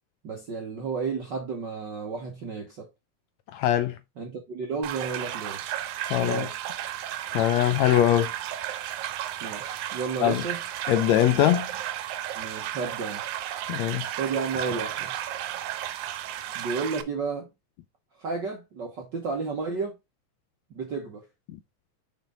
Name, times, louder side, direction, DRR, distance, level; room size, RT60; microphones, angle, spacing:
voice 1, 0.2-2.9 4.2-5.7 6.1-6.5 9.4-10.6 12.3-13.2 14.2-15.1 16.5-17.5 18.2-20.0 20.7-21.2, right 4 dB, 65° right, 1.1 m, -32 dB
voice 2, 3.5-4.0 6.1-6.5 7.3-8.3 10.2-10.4 10.9-11.7 13.7-14.1, left 12 dB, 80° left, 1.6 m, -22 dB
sound 1, 4.8-17.0, right 12 dB, 80° right, 2.2 m, -33 dB
5.9 x 5.2 x 3.8 m
omnidirectional pair, 3.5 m